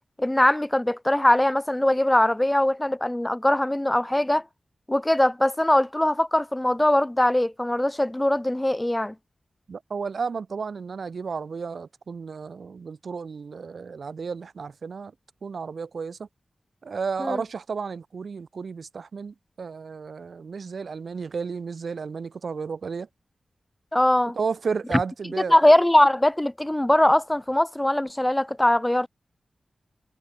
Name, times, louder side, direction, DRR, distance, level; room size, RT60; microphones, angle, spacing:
voice 1, 0.2-4.4 4.9-9.1 17.2-17.4 23.9-24.4 25.5-29.1, left 1 dB, 10° left, 0.4 m, -21 dB
voice 2, 9.7-15.1 15.4-16.3 16.8-23.1 24.4-25.6, right 5 dB, 70° right, 0.8 m, -32 dB
wide cardioid pair, 125°, 0 cm